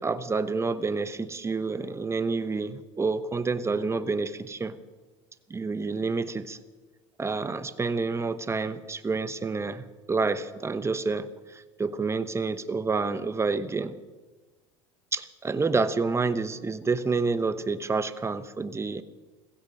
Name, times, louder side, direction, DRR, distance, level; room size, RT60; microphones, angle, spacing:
voice 1, 0.0-4.8 5.5-6.6 7.2-13.9 15.1-19.0, right 4 dB, 20° right, 13 dB, 1.0 m, -28 dB
16.0 x 15.5 x 5.5 m, 1.3 s
supercardioid pair, 95°, 15 cm